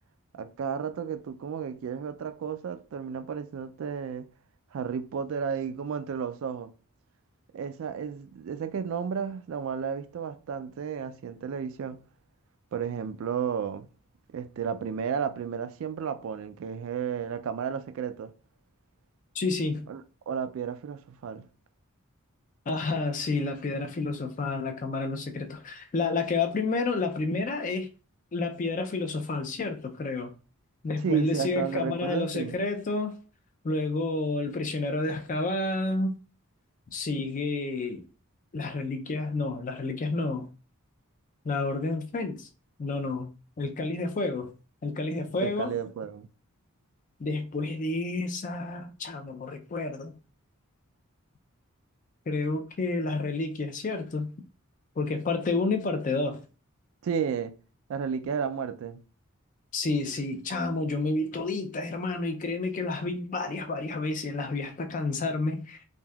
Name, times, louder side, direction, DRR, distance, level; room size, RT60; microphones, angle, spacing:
voice 1, 0.3-4.3 4.7-6.7 7.5-12.0 12.7-13.9 14.3-18.3 19.9-20.0 20.3-21.5 31.0-32.6 45.4-46.3 57.0-57.5 57.9-59.0, right 7 dB, 60° right, 0.3 m, -32 dB
voice 2, 19.3-19.8 22.7-27.9 28.3-30.3 30.8-33.2 33.6-36.1 36.9-38.0 38.5-40.5 41.4-42.5 42.8-44.5 44.8-45.7 47.2-50.1 52.3-54.3 55.0-56.4 59.7-65.8, left 3 dB, 35° left, 0.4 m, -30 dB
3.4 x 2.6 x 2.3 m
head